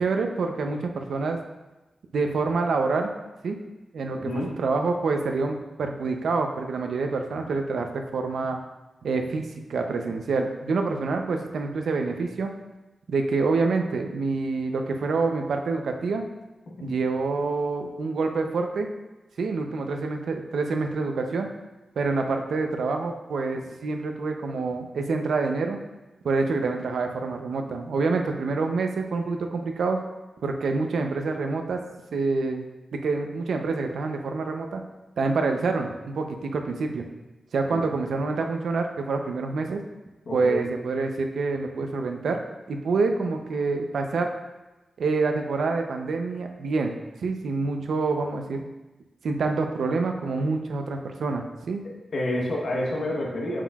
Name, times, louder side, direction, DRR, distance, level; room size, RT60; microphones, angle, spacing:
voice 1, 0.0-1.4 2.1-3.1 3.4-3.6 3.9-8.6 9.0-12.5 13.1-16.2 16.8-18.9 19.4-21.5 22.0-25.8 26.2-30.0 30.4-31.8 32.1-34.8 35.2-37.0 37.5-39.8 40.3-42.4 42.7-44.3 45.0-46.9 47.2-48.6 49.2-51.8, right 4 dB, 90° right, 4 dB, 0.6 m, -27 dB
voice 2, 4.1-4.5 16.8-16.9 37.7-37.8 40.3-40.6 51.8-53.6, left 1 dB, 55° left, -2 dB, 1.1 m, -29 dB
7.4 x 6.4 x 2.4 m, 1.1 s
wide cardioid pair, 175°, 0 cm